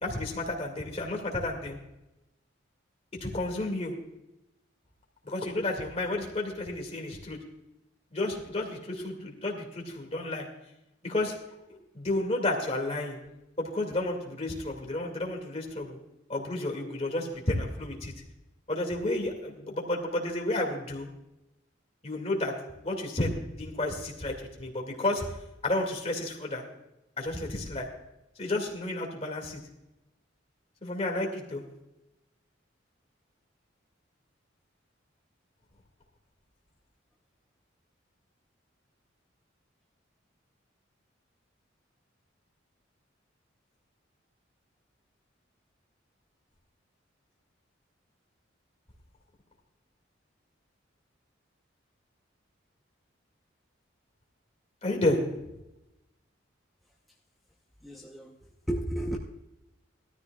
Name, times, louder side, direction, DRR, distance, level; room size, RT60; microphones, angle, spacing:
voice 1, 0.0-1.8 3.2-3.9 5.2-7.4 8.1-10.5 11.0-11.3 11.7-13.2 13.6-16.0 16.3-18.1 18.7-21.1 22.0-22.5 22.8-25.3 25.6-26.6 27.2-27.9 28.4-29.6 30.8-31.6 54.8-55.2, left 2 dB, 30° left, 1 dB, 2.2 m, -31 dB
voice 2, 57.8-58.4 58.7-59.2, right 1 dB, ahead, -3 dB, 0.8 m, -32 dB
18.0 x 13.0 x 2.4 m, 0.91 s
head